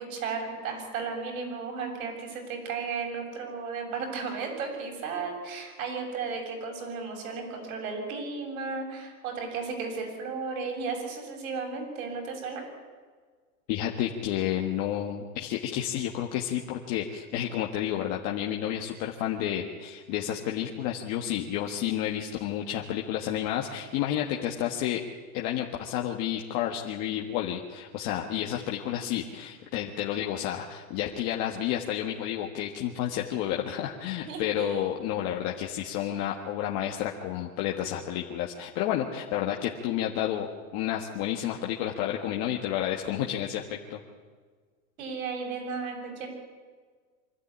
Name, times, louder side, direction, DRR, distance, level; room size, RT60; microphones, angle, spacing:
voice 1, 0.0-12.6 34.2-34.9 45.0-46.3, right 5 dB, 70° right, 2 dB, 7.3 m, -34 dB
voice 2, 13.7-25.0 25.3-44.0, left 11 dB, 35° left, 0 dB, 1.6 m, -31 dB
24.5 x 13.5 x 9.9 m, 1.5 s
supercardioid pair, 155°, 44 cm